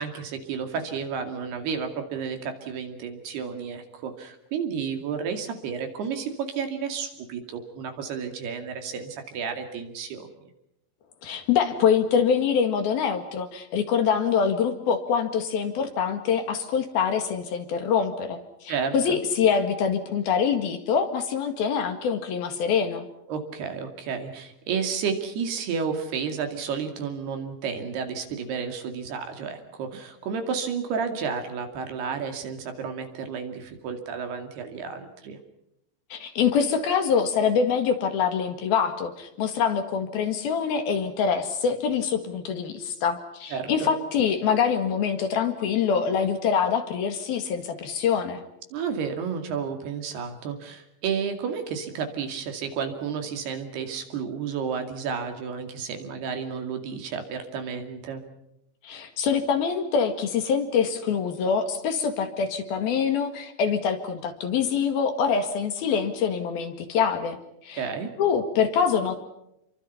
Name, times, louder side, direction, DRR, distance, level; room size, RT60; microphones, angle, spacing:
voice 1, 0.0-10.5 18.7-19.2 23.3-35.4 43.5-43.9 48.7-58.2 67.8-68.1, right 6 dB, 65° right, 6 dB, 4.2 m, -31 dB
voice 2, 11.2-23.1 36.1-48.4 58.8-67.4 67.6-67.8 68.2-69.2, left 7 dB, 60° left, 7 dB, 3.5 m, -25 dB
29.0 x 24.0 x 5.7 m, 0.81 s
omnidirectional pair, 5.2 m